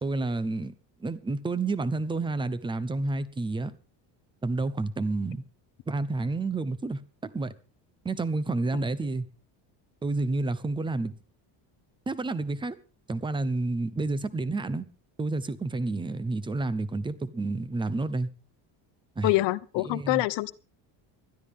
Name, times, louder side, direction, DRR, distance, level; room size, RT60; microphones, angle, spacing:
voice 1, 0.0-0.7 1.0-3.7 4.4-5.4 5.9-7.5 8.0-9.3 10.0-11.1 12.1-12.8 13.1-14.8 15.2-18.3 19.2-19.3 19.9-20.2, right 3 dB, 10° right, 0.8 m, -30 dB
voice 2, 19.2-20.5, left 20 dB, 75° left, 1.0 m, -25 dB
20.0 x 13.0 x 3.6 m
cardioid pair, 155°, 43 cm